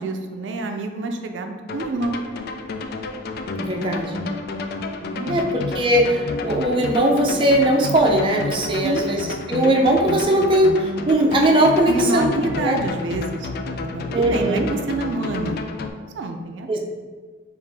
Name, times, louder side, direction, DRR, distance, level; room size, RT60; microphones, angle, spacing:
voice 1, 0.0-2.2 5.0-5.5 8.8-9.1 11.8-13.5 13.9-15.6 16.1-16.7, right 2 dB, 85° right, 5 dB, 0.4 m, -27 dB
sound 1, 1.7-15.9, left 3 dB, 60° left, 0.3 m, -30 dB
voice 2, 3.6-4.2 5.3-12.8 14.1-14.7 16.7-16.8, right 1 dB, 30° right, 0 dB, 0.5 m, -19 dB
4.9 x 2.5 x 3.3 m, 1.4 s
head